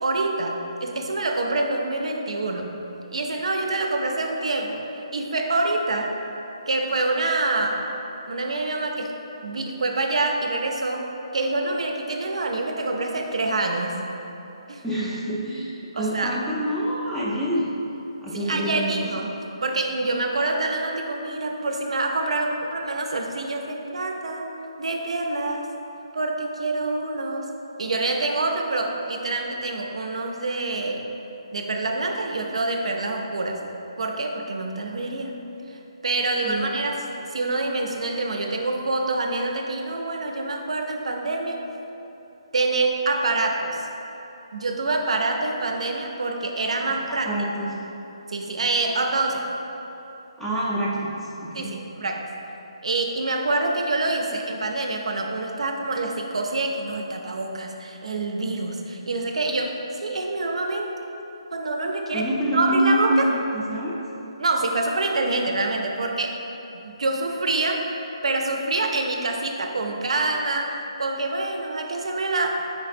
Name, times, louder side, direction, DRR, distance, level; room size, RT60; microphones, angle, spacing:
voice 1, 0.0-2.7 3.1-4.8 5.1-6.2 6.7-7.9 8.3-11.1 11.3-14.0 14.7-14.8 15.9-16.4 18.3-19.4 19.6-24.5 24.8-25.7 26.1-27.5 27.8-31.1 31.5-33.6 34.0-35.3 35.7-37.0 37.3-41.6 42.5-43.9 44.5-47.3 48.3-49.5 51.5-52.3 52.8-60.9 61.5-63.3 64.4-66.4 66.7-67.8 68.2-72.5, right 2 dB, 80° right, 2 dB, 0.5 m, -26 dB
voice 2, 14.8-17.7 18.2-19.0 36.4-36.8 47.1-47.7 50.4-51.7 62.1-64.0, right 1 dB, ahead, -8 dB, 0.4 m, -26 dB
4.4 x 4.2 x 2.5 m, 3.0 s
hypercardioid pair, 160°, 3 cm